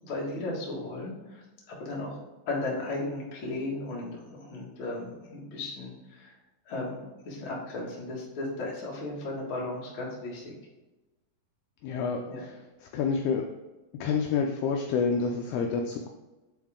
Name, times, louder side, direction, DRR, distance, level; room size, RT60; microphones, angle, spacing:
voice 1, 0.0-1.4 1.7-2.2 2.4-6.3 6.6-10.5 12.3-12.4, left 2 dB, 50° left, -4 dB, 1.5 m, -35 dB
voice 2, 11.8-13.4 13.9-16.1, left 5 dB, 80° left, 2 dB, 2.3 m, -29 dB
9.0 x 4.2 x 3.6 m, 1.1 s
omnidirectional pair, 5.0 m